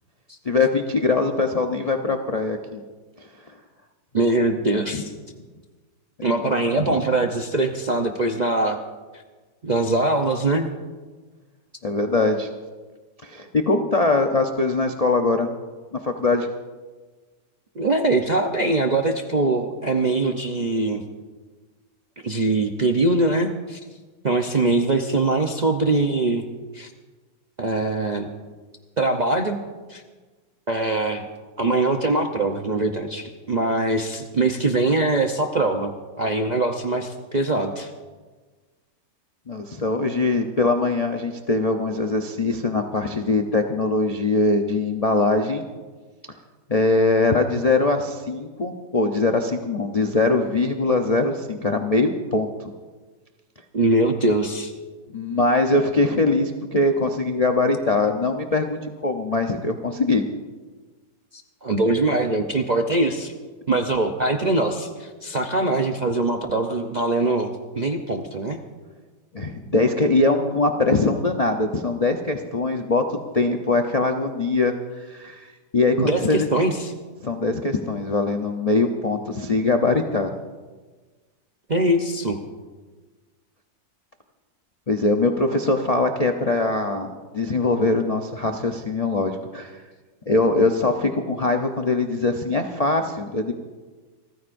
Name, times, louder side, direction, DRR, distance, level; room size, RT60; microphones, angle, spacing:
voice 1, 0.4-2.8 4.9-5.0 6.9-7.0 11.8-12.5 13.2-15.5 15.9-16.5 39.5-45.6 46.7-52.7 55.1-60.2 69.3-76.5 77.2-80.3 84.9-89.8 90.3-93.5, left 3 dB, 45° left, 2 dB, 0.5 m, -22 dB
voice 2, 4.1-5.1 6.2-8.8 9.6-10.7 17.8-21.0 22.2-23.8 24.2-26.4 26.7-26.9 27.6-28.3 29.0-29.6 29.9-30.0 30.7-31.3 31.6-37.9 53.7-54.7 61.3-63.3 63.7-68.6 76.0-76.9 81.7-82.4, right 2 dB, 45° right, 2 dB, 0.6 m, -22 dB
28.0 x 14.5 x 2.6 m, 1.4 s
omnidirectional pair, 1.8 m